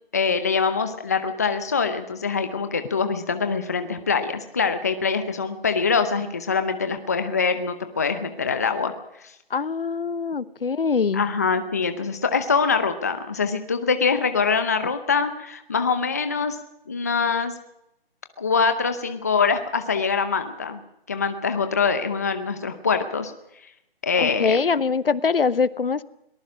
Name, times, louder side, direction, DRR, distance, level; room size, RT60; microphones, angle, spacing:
voice 1, 0.1-8.9 11.1-16.6 16.9-17.5 18.4-20.8 21.1-23.3 24.0-24.7, left 5 dB, 15° left, 8 dB, 0.7 m, -24 dB
voice 2, 9.5-11.2 24.2-26.0, left 5 dB, 65° left, 17 dB, 1.1 m, -23 dB
22.0 x 19.0 x 6.3 m, 0.82 s
hypercardioid pair, 170°, 30 cm